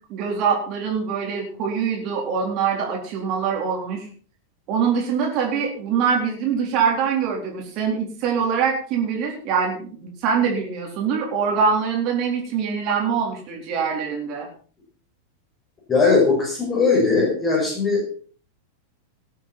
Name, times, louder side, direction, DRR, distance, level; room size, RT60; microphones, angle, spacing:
voice 1, 0.1-4.1 4.7-14.5, right 6 dB, 40° right, 0 dB, 4.1 m, -24 dB
voice 2, 15.9-18.0, left 4 dB, 20° left, -3 dB, 5.7 m, -19 dB
19.0 x 8.4 x 4.5 m, 0.42 s
figure-of-eight pair, 90°, 0 cm